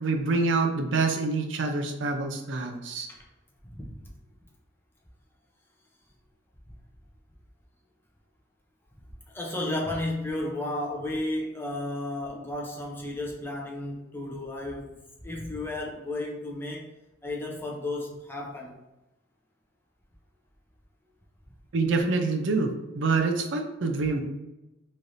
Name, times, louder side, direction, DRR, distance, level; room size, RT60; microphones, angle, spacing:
voice 1, 0.0-3.1 21.7-22.7 22.9-24.2, right 3 dB, 75° right, 4 dB, 0.5 m, -26 dB
voice 2, 9.3-16.9 17.2-18.8, left 1 dB, 10° left, -1 dB, 0.6 m, -33 dB
3.2 x 2.6 x 4.0 m, 0.98 s
head